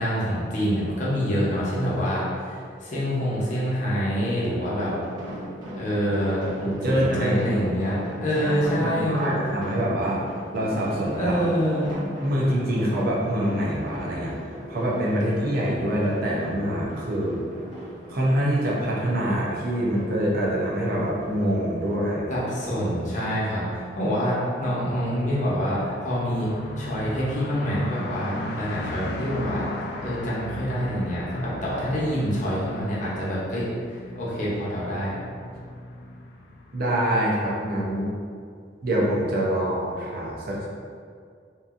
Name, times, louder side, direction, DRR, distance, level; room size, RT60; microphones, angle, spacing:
voice 1, 0.0-4.9 5.8-6.5 6.9-9.3 11.1-11.9 22.3-26.5 26.8-29.7 30.0-33.7 34.2-35.2, equal, 45° left, -7 dB, 0.7 m, -26 dB
sound 1, 4.8-22.1, equal, 25° right, 0.8 m, -38 dB
voice 2, 6.6-7.4 8.5-10.2 10.5-11.5 12.2-14.3 14.7-17.4 18.1-22.3 35.5-35.6 36.7-38.1 38.8-40.7, right 1 dB, 55° right, -4 dB, 0.6 m, -25 dB
sound 2, 21.0-36.9, left 2 dB, 65° left, 0.3 m, -38 dB
2.8 x 2.5 x 2.4 m, 2.2 s
head